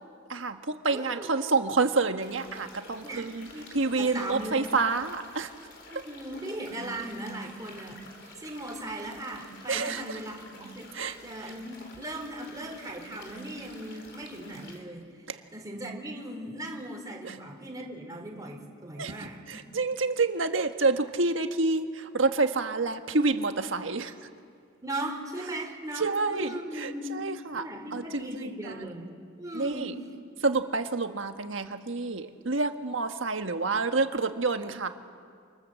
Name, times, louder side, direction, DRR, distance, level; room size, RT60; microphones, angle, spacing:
voice 1, 0.3-3.5 3.7-5.5 9.7-10.2 10.9-11.2 15.3-15.4 17.2-17.4 19.0-24.1 26.0-27.7 27.9-28.8 29.5-29.9 30.4-34.9, right 3 dB, 75° right, 7 dB, 1.5 m, -28 dB
voice 2, 0.9-1.3 3.0-3.2 3.5-3.7 4.0-4.7 5.9-8.0 8.4-10.9 11.2-15.1 15.5-19.6 24.8-27.1 27.5-29.1 29.4-29.9 30.4-30.5, right 1 dB, 20° right, 1 dB, 3.4 m, -38 dB
sound 1, 2.2-14.8, left 2 dB, 65° left, 4.2 m, -50 dB
27.5 x 26.5 x 7.5 m, 2.2 s
head